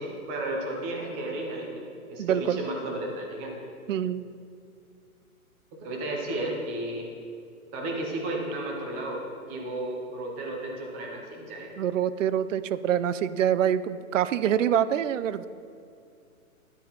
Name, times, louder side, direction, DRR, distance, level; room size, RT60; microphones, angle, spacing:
voice 1, 0.0-3.5 5.8-7.0 7.7-11.7, right 1 dB, 10° right, 0 dB, 0.5 m, -33 dB
voice 2, 2.2-2.6 3.9-4.2 11.8-15.5, right 9 dB, 60° right, 14 dB, 0.5 m, -25 dB
12.5 x 9.5 x 2.9 m, 2.4 s
hypercardioid pair, 150°, 43 cm